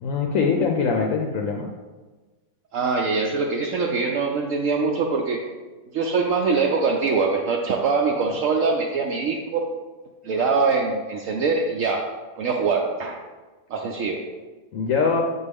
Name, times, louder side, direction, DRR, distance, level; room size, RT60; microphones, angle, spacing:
voice 1, 0.0-1.7 14.7-15.2, left 5 dB, 70° left, 2 dB, 0.9 m, -22 dB
voice 2, 2.7-5.4 5.9-9.7 10.2-13.2 13.7-14.2, right 4 dB, 70° right, 1 dB, 0.9 m, -23 dB
7.0 x 4.2 x 3.5 m, 1.3 s
omnidirectional pair, 1.5 m